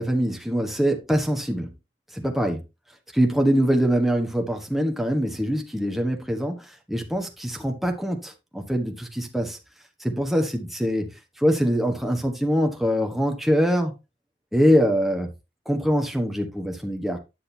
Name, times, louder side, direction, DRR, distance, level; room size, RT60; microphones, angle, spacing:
voice 1, 0.0-1.7 2.1-2.6 3.2-9.6 10.0-11.1 11.4-13.9 14.5-15.3 15.6-17.2, equal, ahead, 1.3 m, -23 dB
10.5 x 6.3 x 2.8 m
head